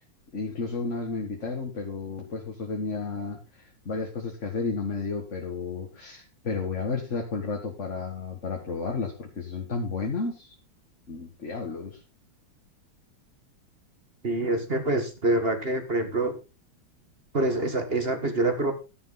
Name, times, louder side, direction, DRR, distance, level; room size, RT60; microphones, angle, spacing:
voice 1, 0.3-10.5 11.1-12.0, left 4 dB, 40° left, 1 dB, 2.1 m, -32 dB
voice 2, 14.2-16.4 17.3-18.7, right 2 dB, 30° right, 7 dB, 1.7 m, -26 dB
12.5 x 10.0 x 4.0 m, 0.30 s
omnidirectional pair, 2.2 m